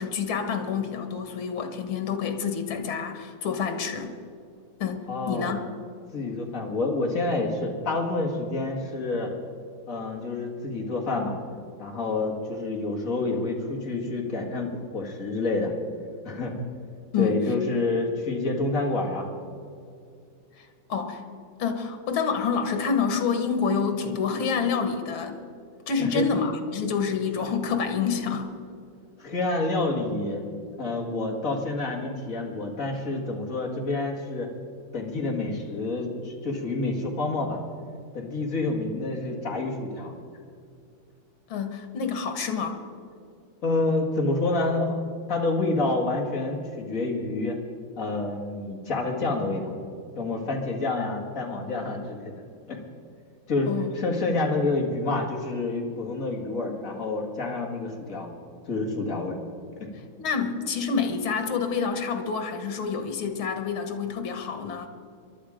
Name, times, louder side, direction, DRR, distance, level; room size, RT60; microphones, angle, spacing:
voice 1, 0.0-4.1 4.8-5.7 17.1-17.4 20.9-21.2 21.6-25.4 25.9-28.5 41.5-42.8 53.7-53.9 60.2-64.9, left 6 dB, 90° left, 7 dB, 2.2 m, -28 dB
voice 2, 5.1-5.6 6.1-9.3 9.9-11.4 11.8-15.7 16.2-16.6 17.2-19.3 26.0-26.3 29.2-30.5 30.8-34.5 34.9-37.6 38.1-40.1 43.6-47.6 48.0-49.7 50.2-52.3 52.7-52.8 53.5-58.3 58.7-59.4 59.8-59.9, left 2 dB, 40° left, 0 dB, 2.3 m, -28 dB
23.5 x 11.5 x 5.0 m, 2.3 s
omnidirectional pair, 2.2 m